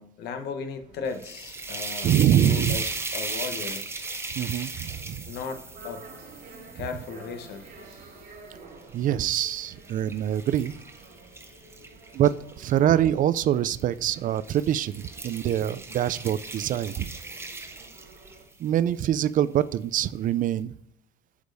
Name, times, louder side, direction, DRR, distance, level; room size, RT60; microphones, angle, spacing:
voice 1, 0.0-2.8 3.1-3.9 5.3-6.0 6.7-7.7 8.2-8.3 11.1-11.7, left 5 dB, 75° left, 8 dB, 1.0 m, -36 dB
sound 1, 0.7-18.4, right 3 dB, 85° right, 2.4 m, -51 dB
sound 2, 1.1-8.3 8.8-12.8 13.7-14.0 14.3-18.5, right 3 dB, 15° right, 0.8 m, -37 dB
voice 2, 2.0-2.8 4.4-5.2 8.9-10.8 12.1-17.1 18.6-20.7, right 11 dB, 50° right, 16 dB, 0.4 m, -24 dB
8.1 x 5.1 x 2.6 m, 0.75 s
cardioid pair, 110°, 17 cm